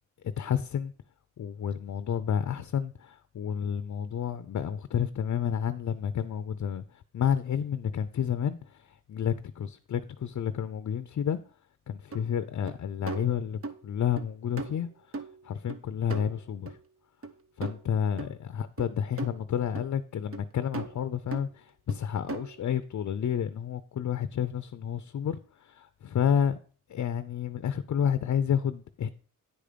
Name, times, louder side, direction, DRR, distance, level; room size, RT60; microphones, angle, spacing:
voice 1, 0.2-0.9 1.4-11.4 11.9-14.9 15.4-16.8 17.6-26.6 26.9-29.1, left 8 dB, 60° left, 0.6 m, -30 dB
sound 1, 12.1-12.2 12.7-12.8 13.1-13.8 14.2-14.3 14.6-15.8 16.1-16.8 17.2-17.3 17.6-17.9 18.2-18.3 18.8-19.4 19.7-19.9 20.3-20.4 20.7-21.0 21.3-21.5 21.9-22.0 22.3-22.6, right 3 dB, 45° right, 0.9 m, -38 dB
9.8 x 5.1 x 6.7 m
wide cardioid pair, 155°, 32 cm